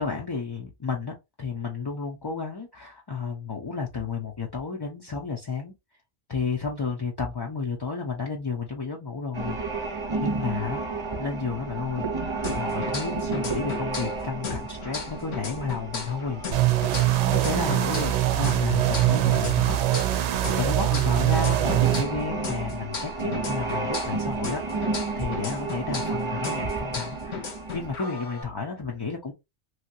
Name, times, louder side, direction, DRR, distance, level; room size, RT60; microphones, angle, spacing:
voice 1, 0.0-5.7 6.3-10.8 11.2-16.8 17.1-19.8 20.1-29.3, left 5 dB, 30° left, 0.4 m, -32 dB
sound 1, 9.3-28.0, right 3 dB, 25° right, 0.9 m, -32 dB
sound 2, 12.4-14.2 14.4-18.2 18.4-22.2 22.4-26.2 26.4-28.4, left 5 dB, 80° left, 1.3 m, -36 dB
sound 3, 16.5-22.0, right 14 dB, 70° right, 0.8 m, -23 dB
3.1 x 2.8 x 2.7 m
omnidirectional pair, 1.3 m